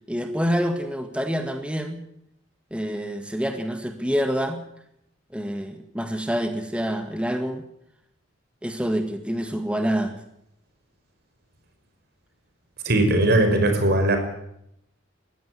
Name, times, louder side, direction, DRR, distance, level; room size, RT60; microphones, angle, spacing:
voice 1, 0.1-2.0 2.7-4.6 5.3-7.6 8.6-10.1, equal, 5° right, 6 dB, 1.8 m, -27 dB
voice 2, 12.8-14.2, right 1 dB, 55° right, 6 dB, 5.4 m, -19 dB
21.5 x 15.0 x 9.7 m, 0.76 s
head